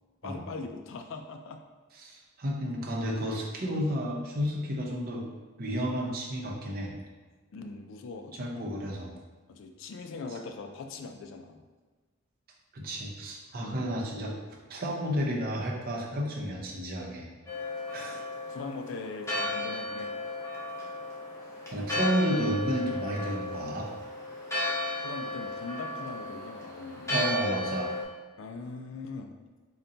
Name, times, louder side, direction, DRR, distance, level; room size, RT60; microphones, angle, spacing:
voice 1, 0.2-1.6 3.7-3.8 7.5-8.7 9.5-11.6 13.6-13.9 18.0-18.2 18.5-20.1 25.0-27.2 28.4-29.3, left 4 dB, 65° left, 5 dB, 0.3 m, -41 dB
voice 2, 2.0-5.3 5.6-7.0 8.4-9.1 12.7-14.3 14.7-17.3 17.9-18.2 21.7-23.9 27.1-27.9, equal, 50° right, -2 dB, 0.6 m, -31 dB
Church bell, 17.5-28.0, left 2 dB, 15° left, 0.7 m, -34 dB
3.9 x 2.2 x 3.8 m, 1.3 s
head